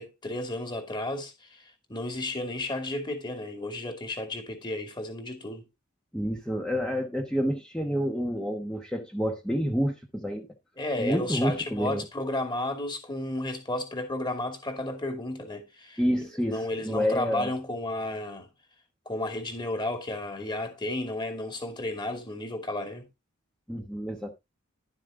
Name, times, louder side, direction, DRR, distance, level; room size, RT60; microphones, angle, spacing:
voice 1, 0.0-5.6 10.8-16.0 16.5-18.5 19.1-23.1, left 1 dB, 20° left, 2.5 m, -33 dB
voice 2, 6.1-10.5 11.0-12.0 16.0-17.5 23.7-24.3, equal, 5° left, 1.1 m, -29 dB
12.0 x 7.4 x 3.7 m
head